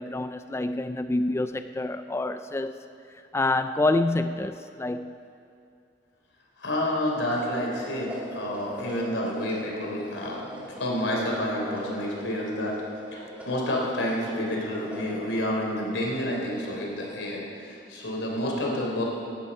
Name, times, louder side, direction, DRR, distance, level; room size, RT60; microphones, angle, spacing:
voice 1, 0.0-2.8 3.3-5.2, left 2 dB, 15° left, 9 dB, 0.3 m, -27 dB
voice 2, 6.6-12.8 13.1-19.0, left 1 dB, 90° left, -2 dB, 3.7 m, -29 dB
sound 1, 7.1-17.2, equal, 10° right, 2.9 m, -42 dB
18.0 x 12.0 x 5.5 m, 2.5 s
head